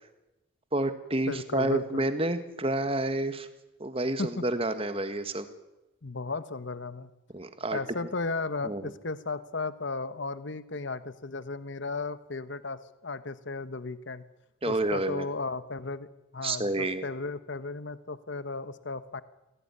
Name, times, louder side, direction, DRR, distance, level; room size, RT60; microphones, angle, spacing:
voice 1, 0.7-3.5 3.8-5.5 7.3-7.8 8.6-8.9 14.6-15.2 16.4-17.0, right 2 dB, 25° right, 10 dB, 1.7 m, -29 dB
voice 2, 1.3-2.0 4.2-4.4 6.0-7.1 7.7-14.2 14.7-16.1 16.3-19.2, left 3 dB, 55° left, 14 dB, 1.0 m, -35 dB
25.5 x 17.0 x 9.9 m, 1.0 s
head